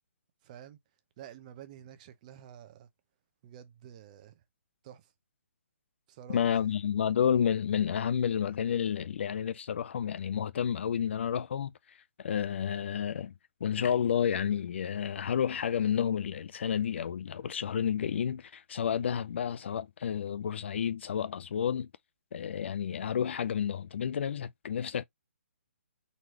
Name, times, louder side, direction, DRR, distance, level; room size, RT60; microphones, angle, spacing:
voice 1, 0.4-0.8 1.2-2.9 3.4-4.4 4.8-5.1 6.1-6.7, right 10 dB, 35° right, 0.7 m, -49 dB
voice 2, 6.3-11.7 12.2-13.3 13.6-21.9 22.3-25.0, left 8 dB, 55° left, 0.5 m, -30 dB
4.0 x 3.1 x 3.0 m
hypercardioid pair, 145°, 7 cm